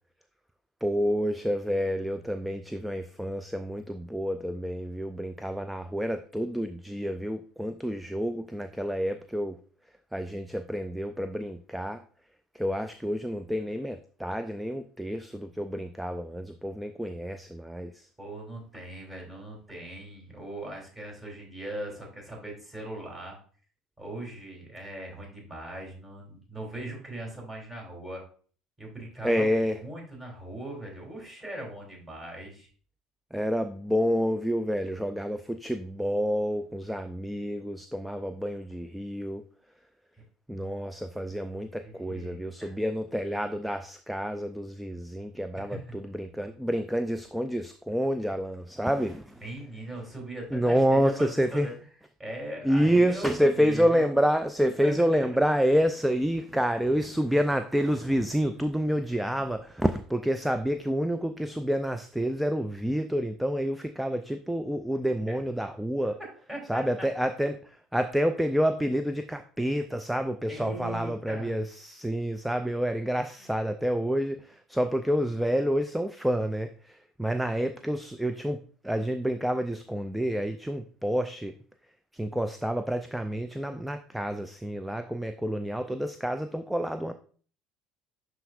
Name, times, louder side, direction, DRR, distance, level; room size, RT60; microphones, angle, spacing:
voice 1, 0.8-9.6 10.1-12.0 12.5-18.1 29.2-29.8 33.3-39.4 40.5-49.4 50.5-51.7 52.6-66.2 66.7-81.5 82.1-87.1, equal, 5° right, 10 dB, 0.4 m, -28 dB
voice 2, 18.2-23.4 24.0-28.2 28.8-32.7 41.8-42.7 45.5-45.9 49.4-51.7 52.2-54.1 54.8-55.2 65.3-65.4 66.5-67.1 70.5-71.5 73.4-73.5, right 1 dB, 20° right, -1 dB, 3.3 m, -40 dB
11.5 x 4.0 x 2.5 m, 0.43 s
figure-of-eight pair, 60°, 0 cm